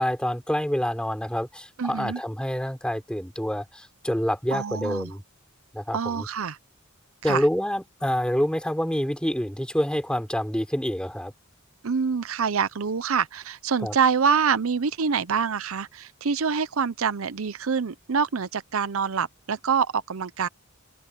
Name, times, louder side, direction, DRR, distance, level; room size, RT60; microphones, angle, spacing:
voice 1, 0.0-5.2 5.7-6.3 7.2-11.3 13.8-14.0, equal, 5° left, 3.6 m, -27 dB
voice 2, 1.8-2.2 4.5-5.1 5.9-6.6 7.3-7.4 11.8-20.5, right 6 dB, 80° right, 0.7 m, -26 dB
open air
head